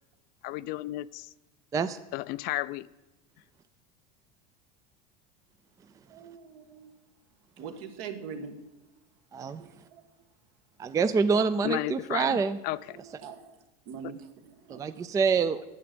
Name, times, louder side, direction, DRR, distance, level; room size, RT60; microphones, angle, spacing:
voice 1, 0.4-1.3 2.1-2.9 11.6-12.8, left 17 dB, 50° left, 17 dB, 0.4 m, -33 dB
voice 2, 6.1-6.9 7.6-8.5 9.6-10.0 12.9-13.5 13.9-14.8, right 6 dB, 65° right, 7 dB, 1.5 m, -43 dB
voice 3, 9.3-9.6 10.8-12.6 14.7-15.8, right 5 dB, 15° right, 12 dB, 0.4 m, -26 dB
9.3 x 7.8 x 7.8 m, 1.1 s
supercardioid pair, 130°, 20 cm